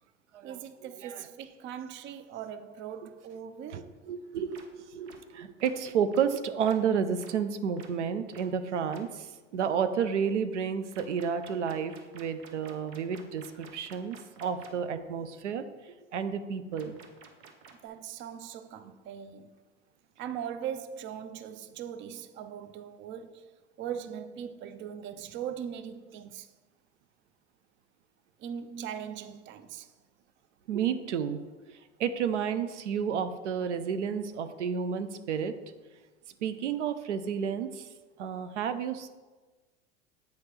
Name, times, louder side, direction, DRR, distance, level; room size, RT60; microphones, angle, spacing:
voice 1, 0.4-4.0 17.8-19.6 20.2-23.5 23.8-26.5 28.4-29.9, right 8 dB, 35° right, 0.5 m, -40 dB
voice 2, 4.1-15.6 16.1-17.0 30.7-31.4 32.0-35.5 36.4-37.9 38.2-39.1, right 7 dB, 85° right, 0.5 m, -31 dB
sound 1, 4.5-4.6 5.1-5.2 5.6-5.7 6.1-6.2 6.6-6.8 7.2-7.3 7.8-7.9 8.3-8.4 8.9-9.0 10.9-14.7 16.7-17.9, right 6 dB, 70° right, 0.9 m, -51 dB
8.3 x 4.3 x 3.2 m
hypercardioid pair, 80°, 35 cm